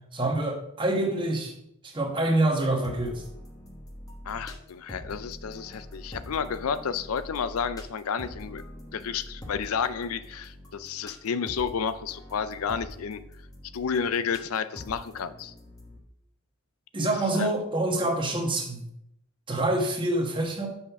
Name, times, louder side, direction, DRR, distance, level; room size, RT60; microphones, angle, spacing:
voice 1, 0.1-1.5 1.8-3.2 16.9-18.8 19.5-20.7, right 2 dB, 25° right, 2 dB, 1.4 m, -26 dB
sound 1, 2.8-16.0, equal, 15° left, 1.1 m, -44 dB
voice 2, 4.3-8.6 8.9-13.2 13.7-15.5 17.3-17.5, left 6 dB, 90° left, 14 dB, 0.5 m, -31 dB
6.5 x 5.8 x 5.8 m, 0.76 s
head